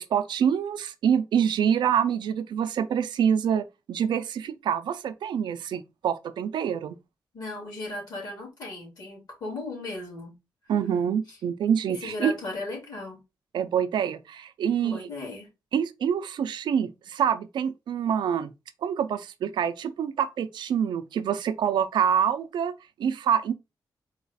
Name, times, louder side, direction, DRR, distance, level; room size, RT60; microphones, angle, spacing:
voice 1, 0.0-6.9 10.7-12.3 13.5-15.1 15.7-18.5 18.8-22.7 23.0-23.5, right 8 dB, 85° right, 0.4 m, -26 dB
voice 2, 7.3-10.3 11.3-11.4 11.9-13.2 14.8-15.5, left 2 dB, 60° left, 2.5 m, -36 dB
4.0 x 2.4 x 4.0 m
wide cardioid pair, 125°, 8 cm